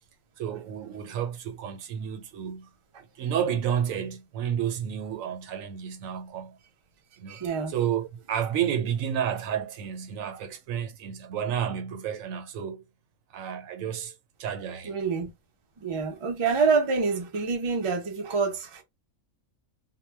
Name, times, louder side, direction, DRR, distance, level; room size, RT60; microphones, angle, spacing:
voice 1, 0.4-2.7 3.2-6.6 7.2-7.4 7.7-12.8 13.3-14.1 14.4-14.9, right 9 dB, 85° right, 1.0 m, -31 dB
voice 2, 7.3-7.7 14.8-15.3 15.8-18.8, right 5 dB, 45° right, 0.4 m, -26 dB
2.2 x 2.1 x 3.2 m
omnidirectional pair, 1.4 m